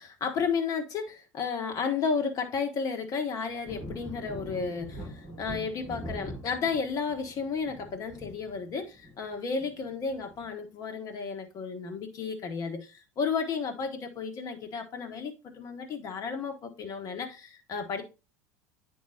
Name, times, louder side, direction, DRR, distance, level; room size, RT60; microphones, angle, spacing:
voice 1, 0.0-18.0, left 5 dB, 35° left, 1.4 m, -33 dB
sound 1, 3.6-10.5, equal, 25° right, 4.3 m, -43 dB
9.2 x 4.7 x 2.8 m
figure-of-eight pair, 75°, 10 cm